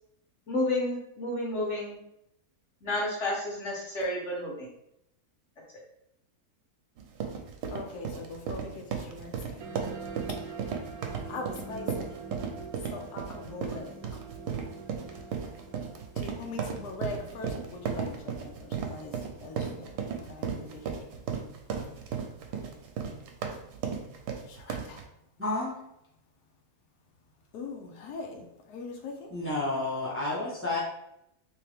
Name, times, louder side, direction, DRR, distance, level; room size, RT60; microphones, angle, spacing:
voice 1, 0.5-2.0 2.8-4.7, left 1 dB, 50° left, -3 dB, 1.3 m, -30 dB
sound 1, 7.0-25.0, right 6 dB, 90° right, 1.1 m, -35 dB
voice 2, 7.6-10.7 11.0-14.2 14.5-14.6 14.9-15.4 15.9-21.2 21.8-22.1 22.4-22.6 24.4-25.1 27.5-29.3, left 3 dB, 85° left, 2 dB, 1.2 m, -43 dB
sound 2, 9.6-20.6, right 4 dB, 70° right, 1.0 m, -46 dB
voice 3, 25.4-25.7 29.3-30.8, left 2 dB, 10° right, -6 dB, 0.7 m, -30 dB
3.3 x 3.1 x 3.4 m, 0.80 s
omnidirectional pair, 1.7 m